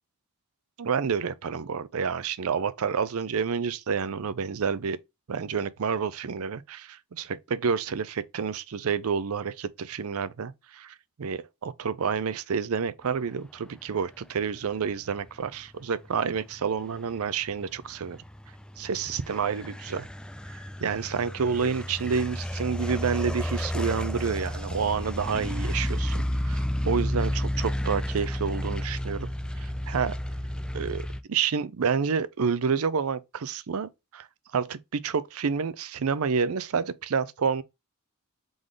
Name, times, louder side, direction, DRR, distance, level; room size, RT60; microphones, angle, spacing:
voice 1, 0.8-5.0 5.3-18.2 18.8-20.1 20.5-29.3 29.6-30.2 30.7-34.3 34.5-37.6, right 6 dB, 75° right, 0.5 m, -29 dB
sound 1, 14.7-31.2, left 1 dB, 5° left, 0.3 m, -32 dB
3.8 x 3.2 x 3.7 m
head